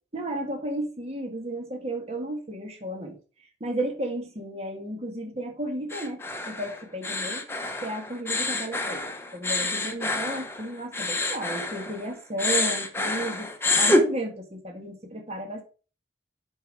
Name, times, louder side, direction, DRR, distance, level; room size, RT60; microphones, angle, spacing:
voice 1, 0.1-3.2 3.6-7.4 7.8-13.5 13.8-15.6, right 1 dB, 35° right, 3 dB, 1.7 m, -33 dB
sound 1, 5.9-12.1 12.4-14.0, left 2 dB, 15° left, 1.0 m, -27 dB
7.2 x 5.8 x 4.7 m, 0.36 s
head